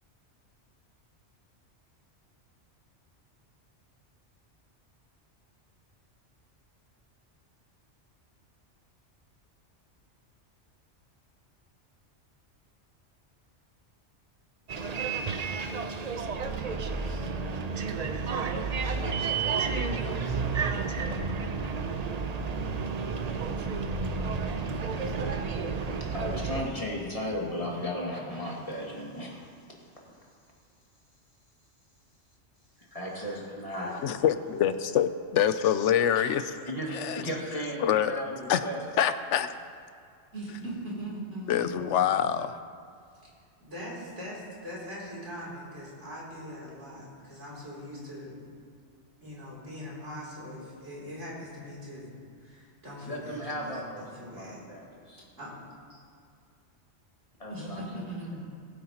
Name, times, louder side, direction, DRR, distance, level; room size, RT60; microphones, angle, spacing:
Bus, 14.7-26.6, right 4 dB, 45° right, 0.6 m, -31 dB
voice 1, 25.8-29.5 32.8-34.0 36.1-36.2 36.7-38.8 53.0-55.2 57.4-57.8, equal, 30° left, -4 dB, 2.1 m, -36 dB
voice 2, 33.9-36.4 36.9-37.2 37.8-38.2 38.5-38.6 39.0-39.5 41.5-42.6, left 9 dB, 85° left, 11 dB, 0.9 m, -25 dB
voice 3, 40.3-41.9 43.6-48.4 49.2-52.1 52.4-54.6 55.4-55.5 55.9-56.0 57.5-58.5, equal, 80° right, -6 dB, 3.5 m, -41 dB
20.0 x 8.6 x 2.9 m, 2.3 s
omnidirectional pair, 1.2 m